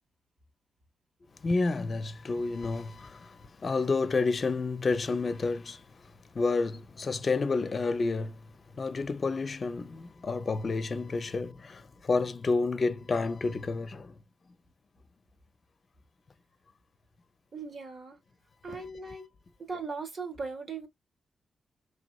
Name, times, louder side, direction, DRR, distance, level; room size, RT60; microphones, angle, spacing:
voice 1, 1.4-5.8 6.3-8.4 8.7-14.1 18.7-18.8, left 3 dB, 50° left, 0.6 m, -30 dB
voice 2, 17.5-18.2 18.6-19.3 19.6-20.9, right 4 dB, 55° right, 1.3 m, -38 dB
3.3 x 3.0 x 2.3 m
cardioid pair, 60°, 0 cm